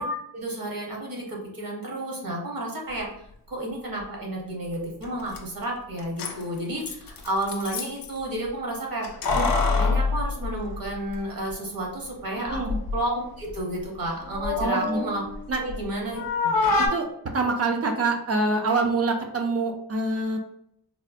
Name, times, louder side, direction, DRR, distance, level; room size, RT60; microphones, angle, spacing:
voice 1, 0.0-3.1 3.5-9.1 9.3-9.5 9.7-12.6 12.9-15.2 15.5-16.6, right 1 dB, 55° right, -1 dB, 0.9 m, -31 dB
Keys jangling, 5.0-5.1 5.3-5.4 6.0-8.1 9.0-11.2 11.5-11.6 12.5-13.0 13.4-15.8 16.1-16.9, left 3 dB, 55° left, 0.5 m, -26 dB
voice 2, 12.4-12.8 14.6-15.0 15.5-15.6 16.8-17.1 17.3-20.4, right 3 dB, 35° right, 4 dB, 0.4 m, -25 dB
3.5 x 2.0 x 2.4 m, 0.73 s
wide cardioid pair, 115°, 42 cm